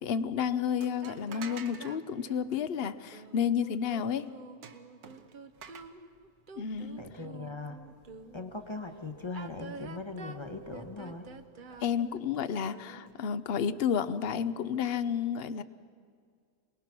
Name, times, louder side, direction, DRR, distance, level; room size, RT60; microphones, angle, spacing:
voice 1, 0.0-4.3 6.6-7.0 11.8-15.6, left 7 dB, 50° left, 14 dB, 0.8 m, -31 dB
sound 1, 0.8-2.0 4.6-5.8, right 6 dB, 85° right, 1.6 m, -47 dB
sound 2, 1.0-8.5 9.2-13.2, right 4 dB, 40° right, 0.8 m, -48 dB
voice 2, 7.0-7.9 8.3-11.3 11.7-11.8, left 3 dB, 20° left, 6 dB, 1.1 m, -40 dB
27.0 x 20.0 x 6.1 m, 2.1 s
omnidirectional pair, 1.6 m